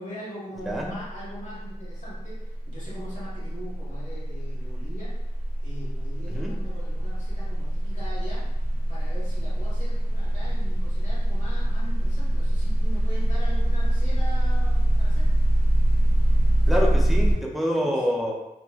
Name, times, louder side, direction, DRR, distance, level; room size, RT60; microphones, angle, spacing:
voice 1, 0.0-5.1 5.6-8.5 8.9-15.3 17.7-17.9 18.2-18.3, equal, 50° left, -8 dB, 1.3 m, -41 dB
sound 1, 0.6-0.9 1.2-17.4, right 1 dB, 75° left, 0.8 m, -23 dB
voice 2, 6.3-6.6 16.7-18.4, equal, ahead, -2 dB, 0.4 m, -26 dB
2.8 x 2.3 x 2.3 m, 0.91 s
wide cardioid pair, 130°, 16 cm